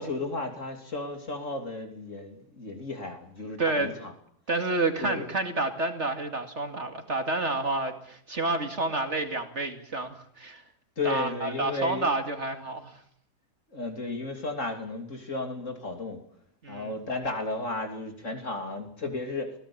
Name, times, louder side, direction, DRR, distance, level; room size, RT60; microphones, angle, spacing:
voice 1, 0.0-4.1 5.0-5.2 11.0-12.1 13.7-16.2 16.7-19.5, left 2 dB, 50° left, 5 dB, 3.4 m, -34 dB
voice 2, 3.6-3.9 4.5-10.6 11.0-13.0 16.6-17.0, right 2 dB, 45° right, 6 dB, 2.6 m, -29 dB
26.5 x 17.5 x 8.7 m, 0.69 s
omnidirectional pair, 1.7 m